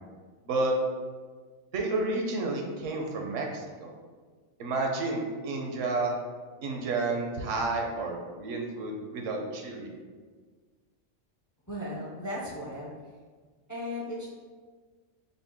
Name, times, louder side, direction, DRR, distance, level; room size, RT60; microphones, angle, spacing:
voice 1, 1.7-3.9 4.6-6.1 6.6-9.9, right 3 dB, 85° right, 1 dB, 1.1 m, -31 dB
voice 2, 11.7-12.9 13.7-14.3, left 1 dB, 30° left, -4 dB, 0.4 m, -36 dB
5.3 x 2.1 x 3.5 m, 1.5 s
omnidirectional pair, 1.3 m